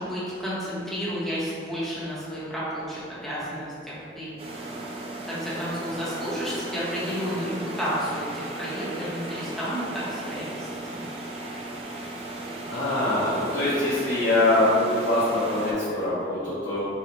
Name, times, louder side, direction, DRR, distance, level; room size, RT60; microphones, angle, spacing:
voice 1, 0.0-4.3 5.3-11.0, equal, ahead, -9 dB, 0.7 m, -31 dB
sound 1, 4.4-15.7, right 2 dB, 30° right, 0.3 m, -36 dB
voice 2, 12.7-16.8, left 1 dB, 75° left, -12 dB, 0.8 m, -23 dB
3.9 x 2.0 x 2.9 m, 2.3 s
head